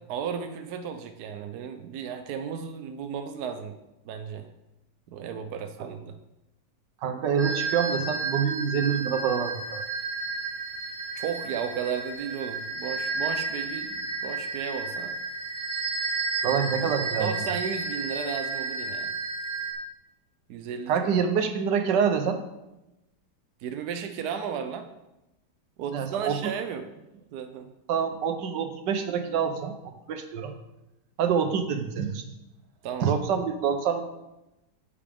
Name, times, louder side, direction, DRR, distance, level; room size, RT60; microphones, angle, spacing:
voice 1, 0.1-3.8 4.0-4.5 5.1-6.1 11.2-15.1 17.2-19.1 20.5-20.9 23.6-24.9 25.8-26.8 27.3-27.7 32.8-33.1, right 7 dB, 70° right, 6 dB, 1.2 m, -34 dB
voice 2, 7.0-9.8 16.4-17.3 20.9-22.4 25.9-26.5 27.9-29.7 30.1-30.5 31.2-32.2 33.0-34.0, right 7 dB, 90° right, 7 dB, 1.6 m, -26 dB
sound 1, 7.4-19.7, right 3 dB, 30° right, 1.7 m, -32 dB
10.0 x 8.4 x 3.5 m, 0.94 s
omnidirectional pair, 1.8 m